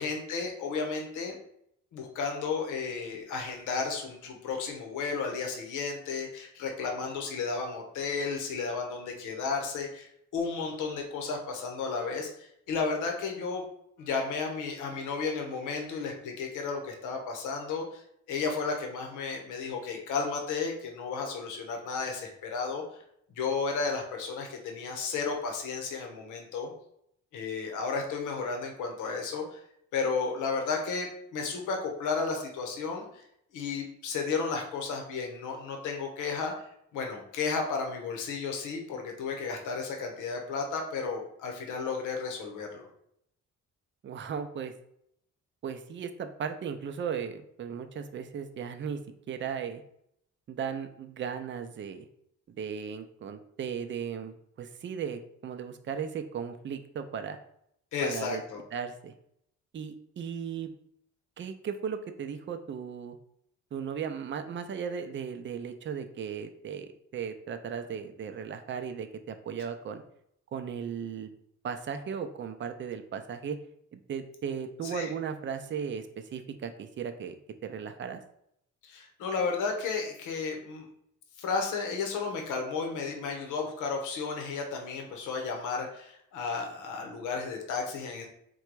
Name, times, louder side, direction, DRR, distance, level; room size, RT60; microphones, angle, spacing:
voice 1, 0.0-1.4 1.9-13.6 14.0-18.0 18.3-22.8 23.4-26.7 27.3-29.6 29.9-33.2 33.5-42.8 57.9-58.6 74.8-75.1 78.8-80.9 81.4-88.3, left 4 dB, 90° left, 2 dB, 0.8 m, -33 dB
voice 2, 44.0-44.7 45.6-49.0 49.3-49.8 50.5-52.1 52.5-57.4 58.0-58.4 58.7-59.1 59.7-60.7 61.4-63.2 63.7-70.0 70.5-71.3 71.6-73.6 73.9-78.2, right 7 dB, 40° right, 8 dB, 0.5 m, -36 dB
3.8 x 2.3 x 4.5 m, 0.72 s
cardioid pair, 90°, 30 cm